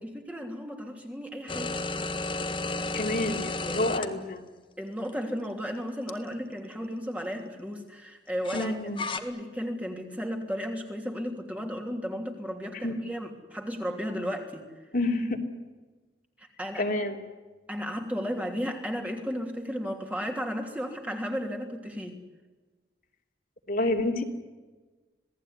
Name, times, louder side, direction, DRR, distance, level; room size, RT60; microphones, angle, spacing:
voice 1, 0.0-1.8 3.6-3.9 4.8-8.7 9.1-14.7 16.4-16.9 17.7-22.2, equal, 10° right, 2 dB, 3.0 m, -34 dB
sound 1, 1.5-4.1 5.1-5.2 8.4-9.2, left 2 dB, 25° left, 1.7 m, -32 dB
voice 2, 2.9-4.4 8.5-9.0 12.8-13.0 14.9-15.4 16.8-17.2 23.7-24.2, left 2 dB, 50° left, 2 dB, 3.0 m, -28 dB
27.0 x 18.5 x 9.6 m, 1.3 s
head